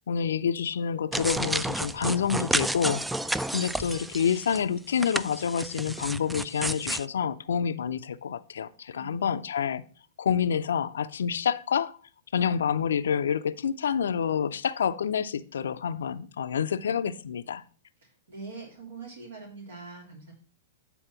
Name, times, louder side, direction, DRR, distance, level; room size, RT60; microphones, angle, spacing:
voice 1, 0.1-3.0 3.5-9.8 10.2-12.0 12.3-17.6, left 7 dB, 75° left, 0.4 m, -28 dB
sound 1, 1.1-4.6 5.0-7.1, right 1 dB, 5° right, 0.3 m, -31 dB
voice 2, 18.0-20.3, right 4 dB, 75° right, 3.0 m, -44 dB
9.0 x 4.2 x 5.7 m
hypercardioid pair, 105°, 0 cm